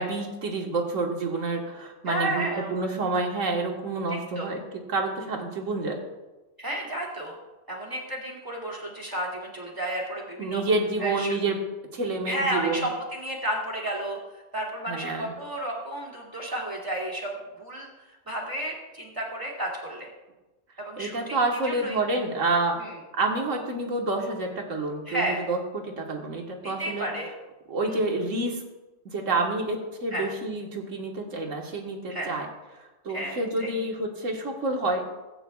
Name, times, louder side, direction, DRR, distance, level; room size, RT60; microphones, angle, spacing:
voice 1, 0.0-4.6 4.9-6.0 10.4-11.6 11.9-12.9 14.9-15.3 21.0-22.8 23.1-27.1 27.7-28.6 29.0-32.5 32.7-35.0, right 2 dB, 80° right, 1 dB, 1.8 m, -28 dB
voice 2, 2.1-2.7 4.4-4.5 6.6-7.3 7.7-10.6 11.0-11.3 12.3-14.2 14.5-17.9 18.3-20.1 20.8-21.4 21.6-22.0 22.8-22.9 25.1-25.4 26.6-27.3 27.9-28.0 30.1-30.3 32.1-32.3 33.1-33.7, right 1 dB, 15° right, -3 dB, 2.4 m, -32 dB
17.0 x 8.9 x 2.3 m, 1.1 s
omnidirectional pair, 1.3 m